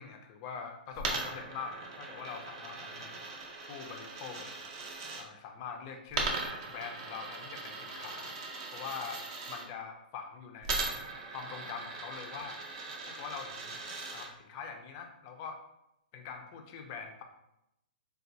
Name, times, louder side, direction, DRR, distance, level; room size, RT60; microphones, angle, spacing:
voice 1, 0.0-3.2 3.7-4.6 5.2-8.3 8.7-9.2 9.5-11.0 11.3-12.6 13.1-13.8 14.1-15.6 16.1-17.2, left 6 dB, 25° left, 4 dB, 0.4 m, -44 dB
Coin (dropping), 0.9-5.2 6.1-9.6 10.6-14.3, right 3 dB, 35° right, 0.5 m, -39 dB
4.2 x 2.2 x 2.6 m, 0.85 s
hypercardioid pair, 165°, 5 cm